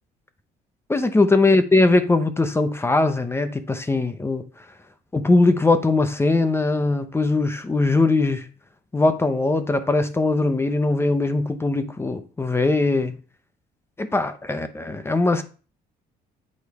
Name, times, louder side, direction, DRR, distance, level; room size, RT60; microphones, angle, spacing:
voice 1, 0.9-4.5 5.1-8.5 8.9-13.2 14.0-15.4, left 2 dB, 15° left, 0.7 m, -20 dB
8.5 x 3.3 x 4.6 m
cardioid pair, 110°, 17 cm